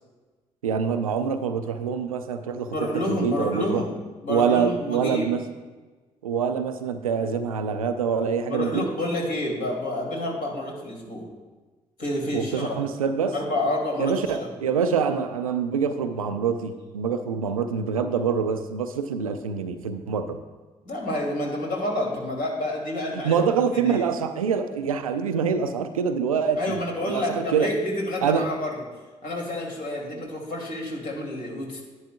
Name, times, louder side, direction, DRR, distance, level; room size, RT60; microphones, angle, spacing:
voice 1, 0.6-2.7 3.1-3.8 4.3-5.4 6.2-8.8 12.3-13.3 14.0-20.4 23.1-27.7 28.2-28.5, right 6 dB, 90° right, 9 dB, 0.4 m, -25 dB
voice 2, 2.7-4.0 4.2-5.3 8.5-11.3 12.0-12.8 13.3-14.5 20.8-23.3 23.7-24.0 26.6-28.8 29.2-31.8, left 1 dB, 55° left, -2 dB, 2.6 m, -29 dB
11.0 x 9.9 x 2.3 m, 1.3 s
figure-of-eight pair, 40°, 18 cm